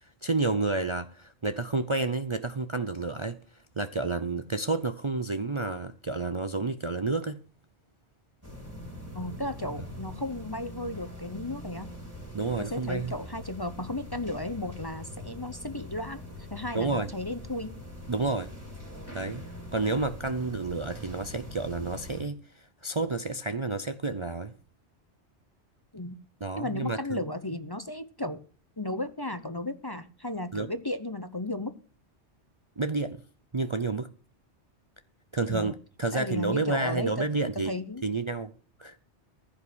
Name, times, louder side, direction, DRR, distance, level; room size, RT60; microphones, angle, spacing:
voice 1, 0.2-3.4 3.8-7.4 12.3-13.2 16.7-17.1 18.1-18.5 19.1-19.4 19.7-24.5 26.4-27.2 30.5-30.7 32.8-33.2 33.5-34.1 35.3-37.7 38.0-38.5 38.8-39.0, right 3 dB, 30° right, 0.6 m, -30 dB
sound 1, 8.4-22.2, left 1 dB, 15° right, 4.6 m, -43 dB
voice 2, 9.1-11.9 12.6-16.2 16.5-17.7 25.9-26.2 26.5-28.4 28.8-31.7 35.5-35.7 36.1-37.3 37.5-38.0, left 1 dB, 25° left, 0.8 m, -34 dB
15.5 x 5.9 x 7.9 m
omnidirectional pair, 1.2 m